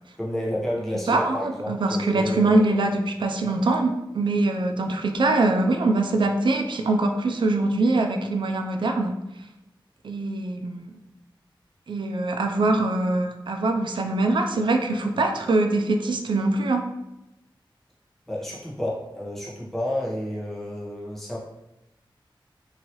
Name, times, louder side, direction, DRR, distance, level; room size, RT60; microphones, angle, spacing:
voice 1, 0.2-3.0 3.4-3.5 18.3-21.4, equal, 5° left, -6 dB, 0.9 m, -31 dB
voice 2, 1.1-9.2 10.0-10.9 11.9-16.9, right 2 dB, 65° right, 4 dB, 0.4 m, -23 dB
2.9 x 2.7 x 2.9 m, 0.93 s
wide cardioid pair, 85°, 9 cm